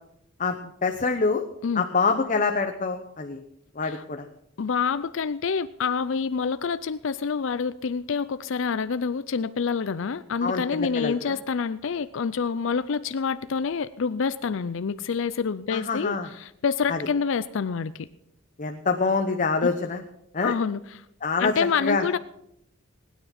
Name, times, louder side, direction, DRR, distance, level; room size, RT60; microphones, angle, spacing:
voice 1, 0.8-1.4 1.7-3.4 3.8-4.3 10.4-11.1 15.7-16.3 16.9-17.0 18.6-20.0 20.3-20.5 21.2-21.5 21.8-22.0, left 4 dB, 40° left, 5 dB, 0.9 m, -25 dB
voice 2, 4.6-18.1 20.4-21.0 21.4-22.2, left 5 dB, 65° left, 14 dB, 0.5 m, -27 dB
19.5 x 9.6 x 5.9 m, 0.79 s
head